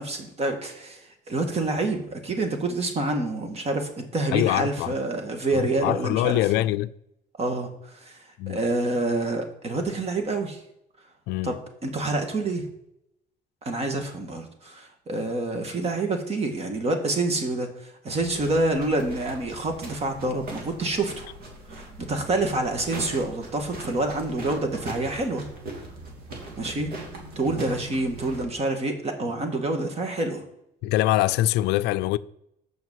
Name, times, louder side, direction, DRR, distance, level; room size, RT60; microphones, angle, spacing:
voice 1, 0.0-6.7 7.4-10.6 11.4-12.7 13.6-21.3 21.7-25.5 26.6-26.9 27.4-30.4, right 2 dB, 35° right, 1.8 m, -27 dB
voice 2, 4.3-5.0 5.5-6.9 8.4-8.6 11.3-11.6 30.8-32.2, left 15 dB, 90° left, 0.4 m, -24 dB
sound 1, 18.2-28.4, right 2 dB, 65° right, 2.8 m, -40 dB
6.3 x 5.9 x 7.3 m
cardioid pair, 110°, 17 cm